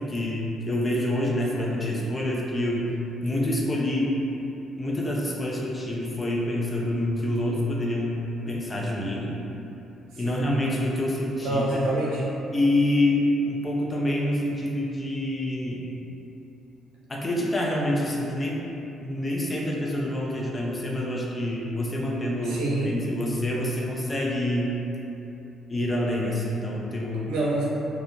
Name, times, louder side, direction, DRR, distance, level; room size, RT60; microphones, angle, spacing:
voice 1, 0.0-2.9 3.2-4.1 4.8-8.2 8.5-9.3 10.2-11.8 12.5-15.9 17.1-18.6 19.0-24.7 25.7-27.3, left 1 dB, 25° left, -3 dB, 0.5 m, -27 dB
voice 2, 10.2-10.5 11.4-12.2 22.4-22.9 27.3-27.6, right 2 dB, 80° right, -6 dB, 0.6 m, -27 dB
2.3 x 2.1 x 3.0 m, 2.9 s
supercardioid pair, 60°, 0 cm